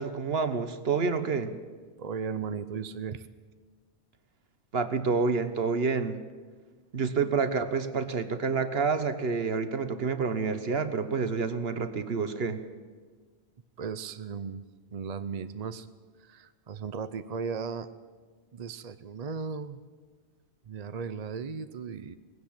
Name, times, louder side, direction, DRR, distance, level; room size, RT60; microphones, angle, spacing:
voice 1, 0.0-1.5 4.7-6.2 6.9-12.6, right 5 dB, 60° right, 10 dB, 1.4 m, -28 dB
voice 2, 2.0-3.3 13.8-14.6 14.9-15.9 16.2-17.9 18.5-19.8 20.7-22.2, right 6 dB, 40° right, 11 dB, 0.6 m, -36 dB
19.5 x 16.0 x 8.7 m, 1.4 s
omnidirectional pair, 1.2 m